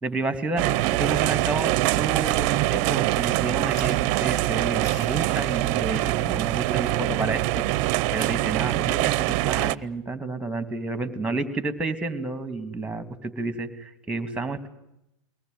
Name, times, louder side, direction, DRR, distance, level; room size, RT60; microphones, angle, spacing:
voice 1, 0.0-0.6 0.9-7.6 8.1-14.7, right 3 dB, 5° right, 11 dB, 2.7 m, -30 dB
sound 1, 0.6-9.8, right 17 dB, 50° right, 0.8 m, -24 dB
sound 2, 3.7-9.8, left 2 dB, 45° left, 7.3 m, -50 dB
23.0 x 19.5 x 9.5 m, 0.84 s
hypercardioid pair, 105°, 16 cm